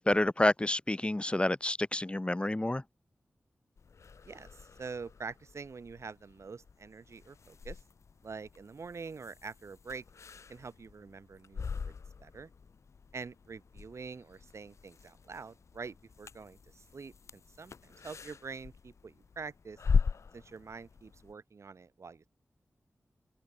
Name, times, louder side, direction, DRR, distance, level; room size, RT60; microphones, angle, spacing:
voice 1, 0.0-2.8, left 1 dB, 20° left, 1.3 m, -29 dB
sound 1, 3.8-21.3, left 5 dB, 80° left, 1.6 m, -40 dB
voice 2, 4.2-7.8 8.2-10.0 10.5-11.9 12.2-12.5 13.1-19.8 20.3-22.3, right 5 dB, 75° right, 4.9 m, -45 dB
open air
wide cardioid pair, 60°, 5 cm